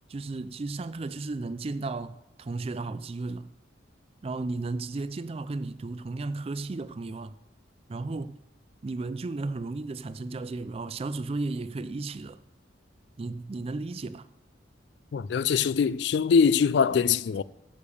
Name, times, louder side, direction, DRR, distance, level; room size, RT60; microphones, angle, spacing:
voice 1, 0.1-3.5 4.2-7.4 7.9-8.4 8.8-12.4 13.2-14.3, right 3 dB, 30° right, 0.3 m, -34 dB
voice 2, 15.1-17.4, left 6 dB, 60° left, 0.3 m, -23 dB
10.0 x 6.6 x 7.0 m
head